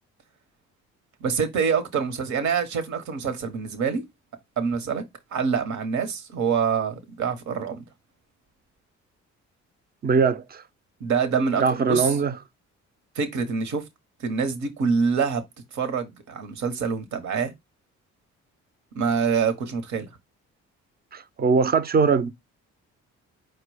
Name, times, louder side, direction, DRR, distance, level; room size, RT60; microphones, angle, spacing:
voice 1, 1.2-4.0 4.6-5.0 5.3-7.8 11.0-12.2 13.1-13.8 14.2-15.4 15.7-17.5 18.9-20.1, right 6 dB, 70° right, 1.1 m, -25 dB
voice 2, 10.0-10.6 11.6-12.3 21.1-22.3, right 5 dB, 30° right, 0.5 m, -21 dB
4.7 x 2.2 x 4.7 m
cardioid pair, 90°, 30 cm